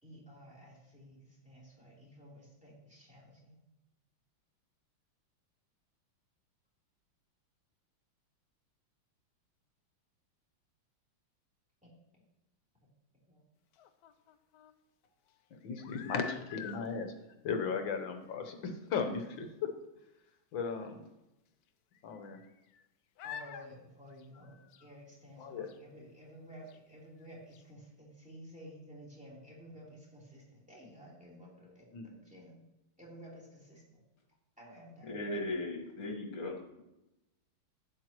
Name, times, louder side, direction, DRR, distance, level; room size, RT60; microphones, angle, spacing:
voice 1, 0.0-3.6 11.8-11.9 13.3-13.4 23.2-32.6 33.0-34.0 34.6-35.2, equal, 5° right, -5 dB, 3.4 m, -53 dB
sound 1, 13.7-14.7 15.6-16.9 17.9-18.0 18.3-18.4 18.9-19.0 19.2-19.3 21.0-21.1 21.9-22.8 23.2-23.7 24.1-24.9 25.7-25.8 26.7-26.8 27.2-27.3 27.5-27.6, left 7 dB, 80° left, 0.8 m, -48 dB
voice 2, 15.5-17.1 17.4-19.7 20.5-21.0 22.0-22.4 25.4-25.7 31.9-32.1, left 5 dB, 65° left, 6 dB, 1.7 m, -36 dB
voice 3, 35.1-36.8, left 2 dB, 45° left, 1 dB, 2.1 m, -38 dB
12.0 x 9.5 x 3.0 m, 0.93 s
omnidirectional pair, 2.3 m